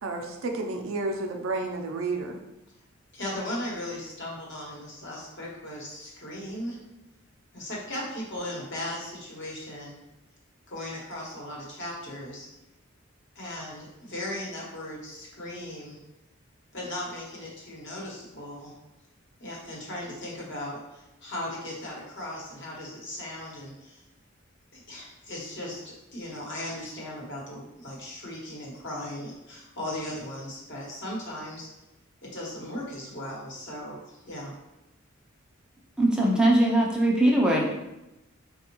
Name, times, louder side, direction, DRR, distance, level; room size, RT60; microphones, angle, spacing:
voice 1, 0.0-2.4, right 3 dB, 70° right, 3 dB, 0.5 m, -31 dB
voice 2, 3.1-6.8 7.5-10.0 10.7-12.5 13.3-16.0 16.7-18.7 19.4-24.0 24.7-31.7 32.2-34.5, left 1 dB, 60° left, -4 dB, 1.0 m, -37 dB
voice 3, 36.0-37.7, right 1 dB, 5° right, -2 dB, 0.4 m, -21 dB
4.2 x 2.3 x 2.9 m, 0.94 s
head